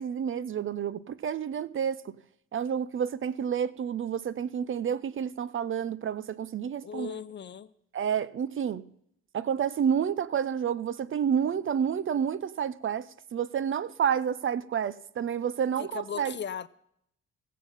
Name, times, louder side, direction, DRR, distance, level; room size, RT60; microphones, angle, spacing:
voice 1, 0.0-2.2 2.5-7.1 7.9-8.9 9.3-16.4, right 8 dB, 45° right, 0.5 m, -29 dB
voice 2, 6.8-7.7 15.8-16.7, left 7 dB, 35° left, 0.5 m, -37 dB
17.0 x 7.4 x 5.5 m
cardioid pair, 90°, 30 cm